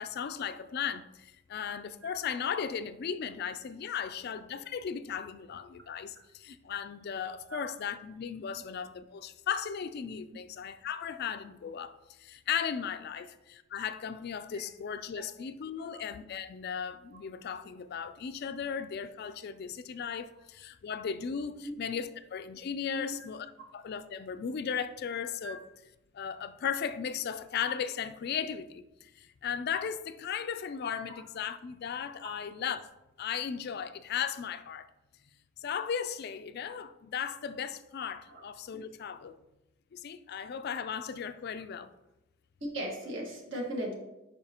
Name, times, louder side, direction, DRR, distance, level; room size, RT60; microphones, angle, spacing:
voice 1, 0.0-23.5 23.7-25.6 26.1-32.9 33.2-34.9 35.6-39.4 39.9-41.9, left 7 dB, 50° left, 0.3 m, -36 dB
voice 2, 42.6-43.9, right 1 dB, 60° right, 1.6 m, -37 dB
8.7 x 5.5 x 2.9 m
head